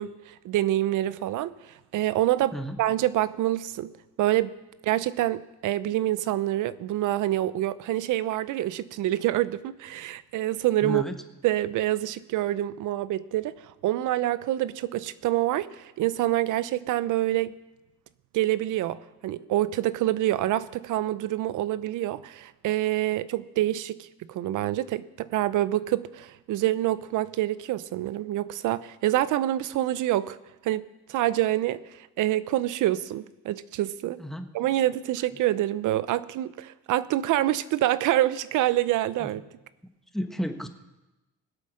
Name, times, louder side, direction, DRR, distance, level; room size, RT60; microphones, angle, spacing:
voice 1, 0.0-1.6 1.9-3.9 4.2-4.5 4.8-11.0 11.4-13.6 13.8-17.5 18.3-30.4 30.6-31.8 32.2-34.2 34.5-39.4, right 14 dB, 80° right, 0.7 m, -26 dB
voice 2, 10.8-11.1 34.2-34.5 39.2-39.3 40.1-40.7, equal, ahead, 1.3 m, -32 dB
20.0 x 8.5 x 6.3 m
cardioid pair, 90°, 30 cm